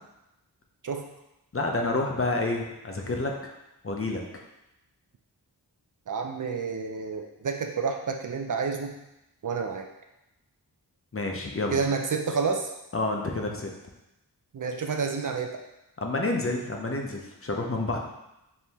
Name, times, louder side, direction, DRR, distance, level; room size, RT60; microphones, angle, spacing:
voice 1, 1.5-3.3 3.8-4.2 11.1-11.8 12.9-13.7 16.0-18.0, left 2 dB, 35° left, 1 dB, 0.6 m, -29 dB
voice 2, 6.1-9.0 9.4-9.9 11.7-12.7 14.5-15.6, right 5 dB, 50° right, 4 dB, 0.5 m, -29 dB
4.3 x 2.8 x 3.4 m, 0.91 s
wide cardioid pair, 55°, 41 cm